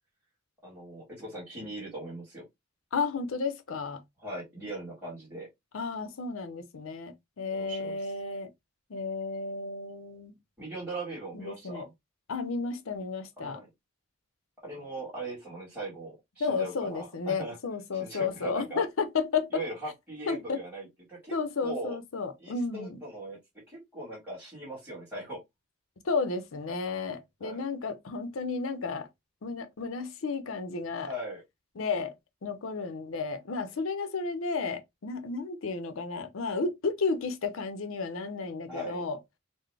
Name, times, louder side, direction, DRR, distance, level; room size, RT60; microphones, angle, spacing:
voice 1, 0.6-2.4 4.2-5.5 7.5-8.1 10.6-11.9 13.4-13.7 14.6-17.6 17.9-18.8 19.5-22.0 22.4-23.4 23.7-25.4 27.4-27.6 31.0-31.4 38.7-39.0, right 1 dB, 10° right, 1.5 m, -40 dB
voice 2, 2.9-4.0 5.7-8.5 8.9-10.3 11.3-11.9 12.3-13.6 16.4-19.6 20.3-20.6 21.3-23.0 26.0-29.1 29.4-31.1 31.8-32.1 32.4-39.2, left 4 dB, 65° left, 0.6 m, -32 dB
3.9 x 2.0 x 3.2 m
head